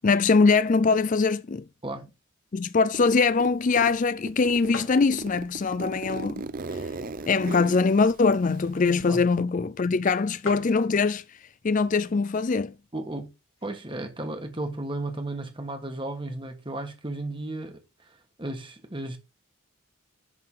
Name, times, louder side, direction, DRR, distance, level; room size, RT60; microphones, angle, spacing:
voice 1, 0.0-1.6 2.5-6.4 7.3-11.2 11.6-12.7, left 4 dB, 35° left, 0.4 m, -22 dB
Zipper (clothing), 2.9-4.0 4.3-9.0, right 3 dB, 40° right, 0.6 m, -36 dB
sound 1, 4.7-5.1 5.7-5.8 6.6-7.8 8.2-8.3 8.4-8.7 9.4-9.5 9.8-9.9 10.1-10.2 10.4-10.8 11.7-12.0 12.6-12.7 12.9-13.7, left 3 dB, 65° left, 3.9 m, -40 dB
voice 2, 12.9-13.3 13.6-17.8 18.4-19.2, right 2 dB, 25° right, 1.6 m, -34 dB
11.0 x 3.8 x 5.5 m
head